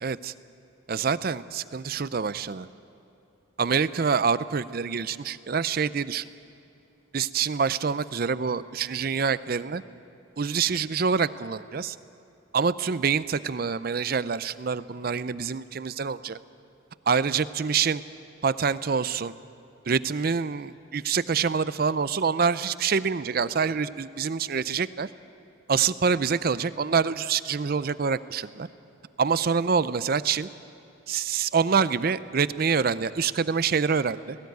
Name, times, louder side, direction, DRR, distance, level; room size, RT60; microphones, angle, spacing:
voice 1, 0.0-0.3 0.9-2.7 3.6-6.2 7.1-9.8 10.4-12.0 12.5-16.4 17.1-18.0 18.4-19.3 19.9-25.1 25.7-28.7 29.2-30.5 31.1-34.4, right 6 dB, 45° right, 16 dB, 0.5 m, -26 dB
18.5 x 15.5 x 9.3 m, 2.7 s
head